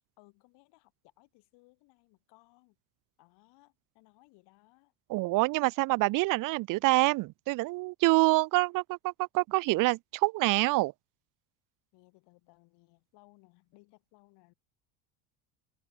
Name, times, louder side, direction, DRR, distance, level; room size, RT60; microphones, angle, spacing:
voice 1, 0.2-2.8 3.2-4.9 11.9-14.5, left 25 dB, 65° left, 6.8 m, -62 dB
voice 2, 5.1-10.9, right 21 dB, 50° right, 0.5 m, -26 dB
supercardioid pair, 115°, 43 cm